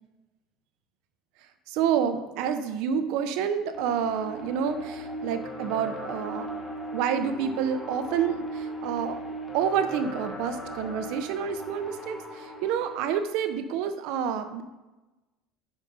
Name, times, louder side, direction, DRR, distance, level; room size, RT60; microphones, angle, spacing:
voice 1, 1.7-6.5 6.9-9.2 9.5-14.6, right 8 dB, 60° right, 8 dB, 0.7 m, -28 dB
sound 1, 3.7-13.1, right 1 dB, 15° left, 1.2 m, -38 dB
7.2 x 5.0 x 5.5 m, 1.1 s
cardioid pair, 170°, 0 cm